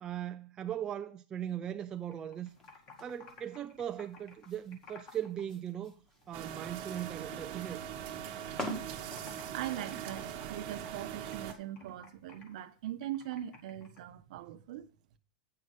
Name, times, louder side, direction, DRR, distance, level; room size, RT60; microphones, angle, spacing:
voice 1, 0.0-2.5 3.0-5.9 6.3-7.8, right 10 dB, 15° right, 0.3 m, -39 dB
Computer keyboard, 1.9-5.4 5.7-6.9 7.3-8.6 8.8-14.0, left 5 dB, 30° left, 2.0 m, -56 dB
sound 1, 2.5-10.1, equal, 10° left, 1.5 m, -47 dB
sound 2, 6.3-11.5, right 9 dB, 40° right, 1.0 m, -41 dB
voice 2, 9.5-14.9, right 12 dB, 60° right, 0.9 m, -41 dB
8.6 x 5.5 x 6.3 m
supercardioid pair, 165°, 4 cm